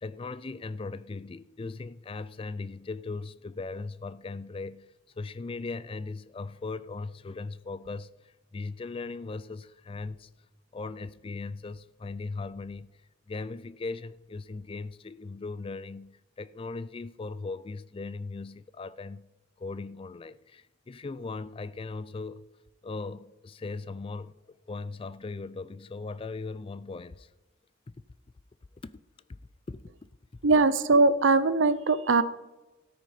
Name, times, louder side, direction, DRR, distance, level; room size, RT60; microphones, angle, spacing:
voice 1, 0.0-10.3 10.7-12.9 13.3-19.3 19.6-22.4 22.8-24.3 24.7-27.3 28.8-29.0 29.3-29.4 29.7-30.1, left 3 dB, 25° left, 0.3 m, -38 dB
voice 2, 30.4-32.2, right 3 dB, 70° right, 0.6 m, -21 dB
13.0 x 6.6 x 5.0 m
head